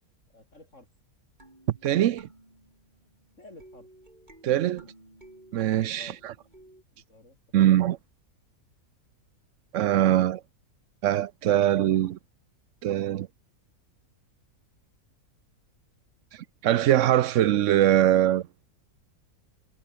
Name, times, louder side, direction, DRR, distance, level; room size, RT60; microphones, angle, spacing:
voice 1, 0.3-0.9 3.4-3.9 5.9-6.2 6.9-7.7, left 2 dB, 50° left, 5.1 m, -51 dB
sound 1, 1.4-6.8, right 1 dB, 30° right, 6.5 m, -55 dB
voice 2, 1.8-2.3 4.4-4.9 5.5-6.3 7.5-8.0 9.7-10.4 11.0-12.2 12.8-13.3 16.3-18.5, right 12 dB, 65° right, 0.8 m, -22 dB
omnidirectional pair, 1.6 m